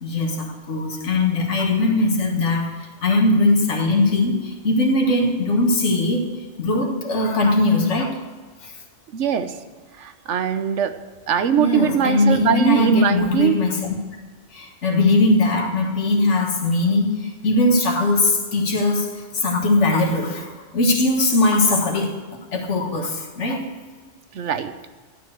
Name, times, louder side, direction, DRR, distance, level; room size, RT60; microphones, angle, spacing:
voice 1, 0.0-6.3 6.6-8.2 8.6-8.8 11.6-14.0 14.5-22.2 22.5-23.6, left 2 dB, 80° left, 1 dB, 1.8 m, -20 dB
voice 2, 9.1-9.5 10.0-11.0 11.3-13.6 24.3-24.7, right 7 dB, 80° right, 10 dB, 1.1 m, -21 dB
11.5 x 6.8 x 7.8 m, 1.4 s
omnidirectional pair, 1.2 m